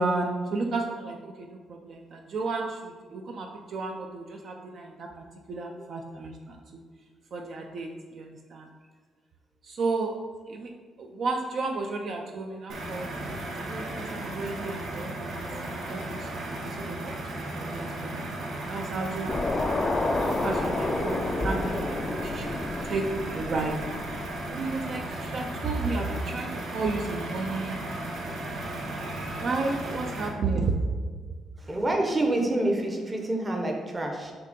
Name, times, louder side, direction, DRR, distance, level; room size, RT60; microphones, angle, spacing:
voice 1, 0.0-6.6 7.3-8.6 9.6-10.2 10.5-10.7 11.0-15.3 15.7-16.5 16.8-17.2 17.5-18.1 18.7-19.5 20.2-21.7 22.0-22.6 22.8-23.1 23.3-23.8 24.5-27.9 29.4-30.7, right 3 dB, 50° right, 2 dB, 0.5 m, -32 dB
voice 2, 5.5-6.2 15.4-16.6 24.9-25.3 25.8-26.3 28.5-29.4 31.6-34.3, right 1 dB, 15° right, 2 dB, 0.8 m, -31 dB
sound 1, 12.7-30.3, right 1 dB, 65° right, 1.1 m, -35 dB
sound 2, 19.3-24.6, left 2 dB, 20° left, 0.4 m, -30 dB
6.9 x 2.8 x 5.2 m, 1.5 s
cardioid pair, 155°, 0 cm